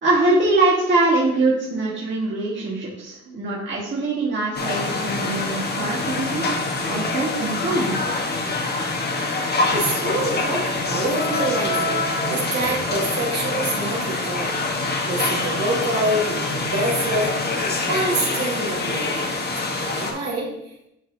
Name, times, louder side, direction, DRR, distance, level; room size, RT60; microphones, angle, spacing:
voice 1, 0.0-6.4 6.8-7.9, right 2 dB, 40° right, -7 dB, 1.8 m, -22 dB
sound 1, 4.5-20.1, left 3 dB, 35° left, 1.3 m, -25 dB
voice 2, 9.7-11.8 12.3-14.5 15.0-17.4 17.9-20.9, right 1 dB, 55° right, -3 dB, 2.7 m, -26 dB
10.5 x 4.0 x 2.8 m, 0.83 s
cardioid pair, 90°, 30 cm